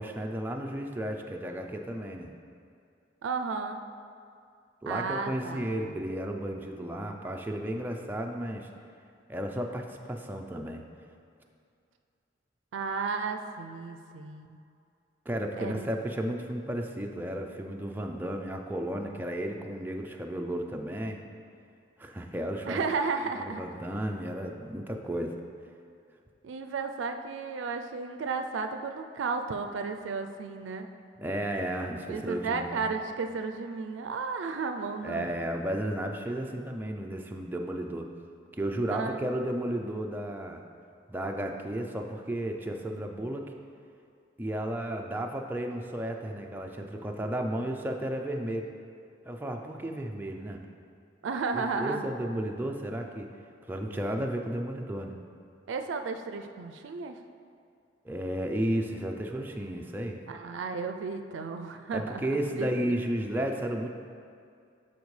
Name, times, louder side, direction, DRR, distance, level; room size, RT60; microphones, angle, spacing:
voice 1, 0.0-2.3 4.8-8.7 9.3-10.8 15.3-21.2 22.0-22.8 23.5-25.3 31.2-32.9 35.0-38.1 38.6-40.6 41.1-43.5 44.4-48.7 49.3-50.6 51.5-53.3 53.6-55.2 58.0-60.2 61.9-63.9, right 1 dB, 10° right, 2 dB, 0.4 m, -33 dB
voice 2, 3.2-3.8 4.9-5.9 12.7-14.6 15.6-15.9 22.7-23.6 26.4-30.9 32.1-35.3 38.9-39.5 51.2-52.1 55.7-57.2 60.3-62.3 62.5-63.0, right 4 dB, 90° right, 7 dB, 0.4 m, -33 dB
12.0 x 4.4 x 3.2 m, 2.4 s
head